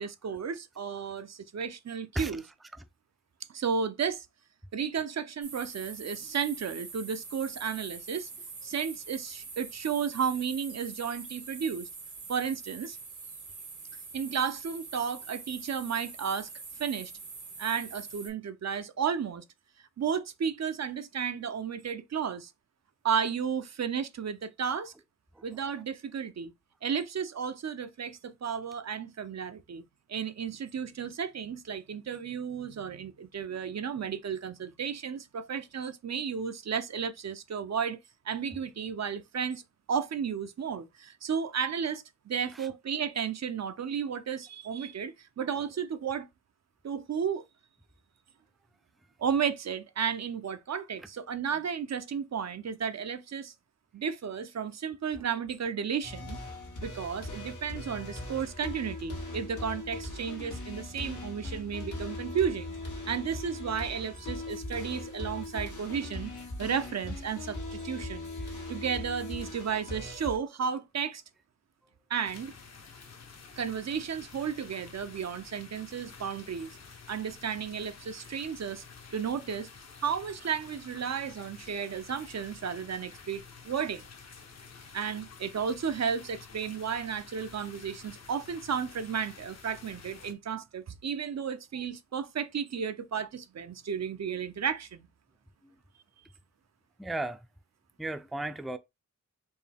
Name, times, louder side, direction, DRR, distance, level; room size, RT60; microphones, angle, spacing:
voice 1, 0.0-2.4 3.5-4.3 4.7-8.3 8.6-11.9 12.3-13.0 14.1-16.5 16.8-17.1 17.6-19.4 20.0-22.5 23.0-24.9 25.4-26.5 26.8-29.8 30.1-38.0 38.3-39.6 39.9-46.3 46.8-47.4 49.2-53.5 53.9-56.4 56.8-62.7 63.1-66.3 66.6-68.3 68.7-71.2 72.1-72.5 73.6-76.8 77.1-78.8 79.1-79.7 80.0-84.1 84.9-95.1, right 7 dB, 60° right, 0.6 m, -33 dB
sound 1, 5.4-18.3, right 4 dB, 80° right, 1.4 m, -44 dB
sound 2, 56.0-70.4, left 2 dB, 90° left, 1.6 m, -39 dB
sound 3, 72.2-90.3, left 5 dB, 60° left, 0.8 m, -50 dB
voice 2, 97.0-97.5 98.0-98.8, right 2 dB, ahead, 0.4 m, -35 dB
4.5 x 2.7 x 3.4 m
cardioid pair, 55°, 30 cm